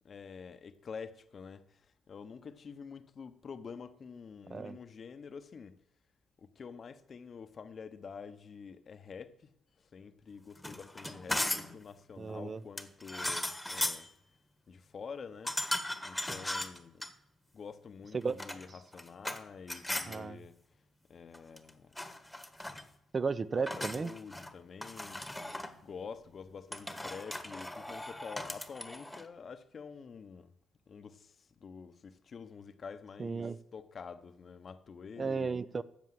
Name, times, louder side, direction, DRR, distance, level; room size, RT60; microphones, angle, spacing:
voice 1, 0.0-1.8 2.1-5.8 6.4-9.5 9.8-14.1 14.7-17.1 17.5-20.6 21.1-21.9 23.5-25.3 25.8-30.5 30.9-35.6, left 6 dB, 45° left, 0.9 m, -48 dB
sound 1, 10.6-11.8 12.8-14.1 15.5-17.1 18.2-19.4 19.7-20.2 21.3-21.7 22.0-22.8 23.7-24.5 24.8-25.7 26.7-29.3, left 1 dB, 5° left, 1.3 m, -37 dB
voice 2, 12.2-12.6 18.1-18.4 20.1-20.4 23.1-24.1 33.2-33.6 35.2-35.8, right 4 dB, 35° right, 0.7 m, -34 dB
13.5 x 7.2 x 7.8 m
cardioid pair, 90°, 0 cm